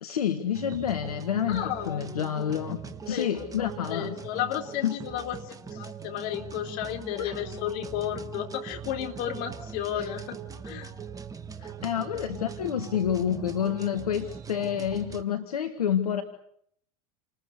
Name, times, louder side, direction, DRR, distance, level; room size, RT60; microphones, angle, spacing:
voice 1, 0.0-2.8 3.1-4.2 4.8-5.0 7.2-7.3 10.0-10.1 11.6-16.2, left 9 dB, 75° left, 6 dB, 1.9 m, -28 dB
sound 1, 0.5-15.2, right 6 dB, 20° right, 1.7 m, -41 dB
voice 2, 1.5-2.0 3.1-10.4 10.6-10.9, left 11 dB, 50° left, 4 dB, 3.8 m, -33 dB
29.0 x 20.0 x 8.4 m, 0.69 s
figure-of-eight pair, 85°, 19 cm